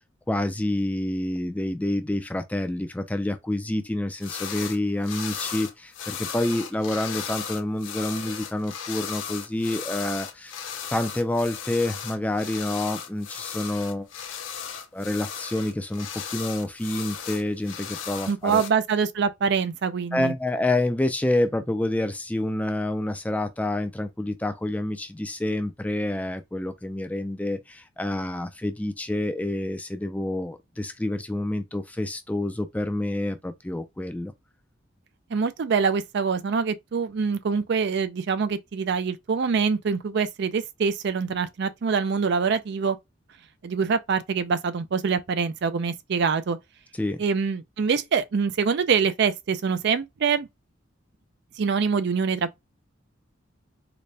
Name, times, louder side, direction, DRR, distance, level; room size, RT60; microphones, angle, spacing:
voice 1, 0.3-10.5 10.9-14.1 14.9-18.6 20.1-34.3 47.0-47.2, left 1 dB, 10° left, 0.4 m, -28 dB
sound 1, 4.2-4.8 5.0-18.7, left 7 dB, 75° left, 0.7 m, -36 dB
voice 2, 18.3-20.3 35.3-43.0 43.6-46.6 47.2-50.5 51.6-52.6, right 5 dB, 60° right, 0.4 m, -25 dB
4.0 x 2.1 x 3.3 m
head